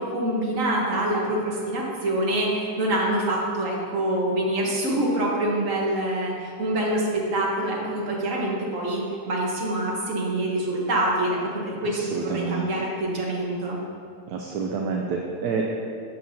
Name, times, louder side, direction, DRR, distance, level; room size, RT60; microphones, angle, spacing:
voice 1, 0.0-13.8, right 1 dB, 50° right, -3 dB, 1.5 m, -25 dB
voice 2, 11.9-12.7 14.3-15.6, right 5 dB, 75° right, 0 dB, 1.1 m, -28 dB
7.6 x 7.3 x 2.7 m, 2.3 s
omnidirectional pair, 1.8 m